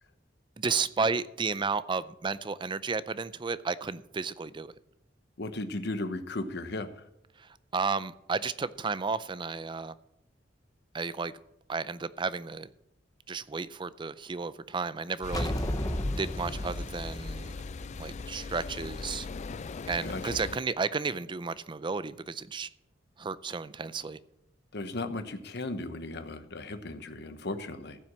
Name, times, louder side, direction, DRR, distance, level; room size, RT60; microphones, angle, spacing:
voice 1, 0.6-4.7 7.7-9.9 10.9-11.3 11.7-12.7 13.3-15.5 16.2-17.6 18.0-19.3 19.9-22.7 23.2-24.2, right 4 dB, 25° right, 0.4 m, -32 dB
voice 2, 5.4-6.9 20.0-20.4 24.7-28.0, left 2 dB, 65° left, 1.1 m, -36 dB
sound 1, 15.2-20.6, left 4 dB, 40° left, 0.4 m, -40 dB
sound 2, 15.3-18.8, left 1 dB, 20° left, 0.9 m, -34 dB
15.0 x 6.0 x 7.4 m
head